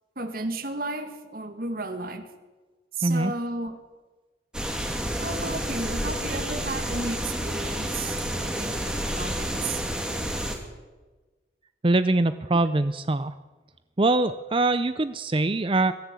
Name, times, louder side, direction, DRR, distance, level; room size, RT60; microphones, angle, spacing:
voice 1, 0.2-2.3 2.9-3.8 5.2-9.8, right 2 dB, 50° right, 8 dB, 1.9 m, -33 dB
voice 2, 3.0-3.3 11.8-13.3 14.0-15.9, right 2 dB, 30° right, 12 dB, 0.5 m, -23 dB
sound 1, 4.5-10.6, equal, 5° right, 2.4 m, -30 dB
22.5 x 14.0 x 8.3 m, 1.3 s
head